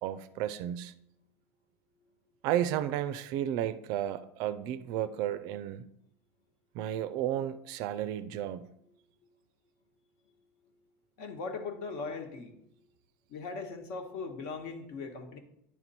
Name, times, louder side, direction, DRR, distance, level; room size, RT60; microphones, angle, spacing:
voice 1, 0.0-0.9 2.4-5.8 6.7-8.6, right 11 dB, 45° right, 0.4 m, -33 dB
voice 2, 11.2-12.6 13.3-15.4, left 4 dB, 60° left, 1.3 m, -39 dB
10.0 x 4.5 x 4.2 m
supercardioid pair, 155°, 9 cm